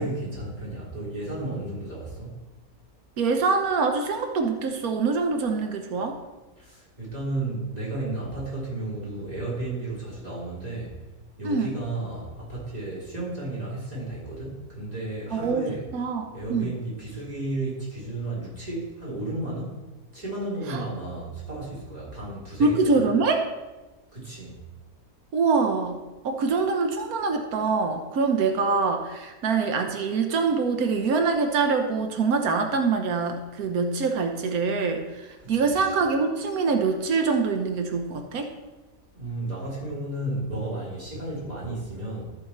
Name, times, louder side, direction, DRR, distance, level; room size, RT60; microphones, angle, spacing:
voice 1, 0.0-2.3 6.6-10.9 11.4-15.8 16.3-19.8 20.1-22.9 24.1-24.6 35.4-36.0 39.1-42.2, right 2 dB, 25° right, -7 dB, 3.6 m, -33 dB
voice 2, 3.2-6.2 11.4-11.8 15.3-16.8 20.7-20.8 22.6-23.5 25.3-38.5, right 4 dB, 85° right, 5 dB, 1.3 m, -24 dB
14.5 x 5.0 x 4.2 m, 1.1 s
omnidirectional pair, 1.5 m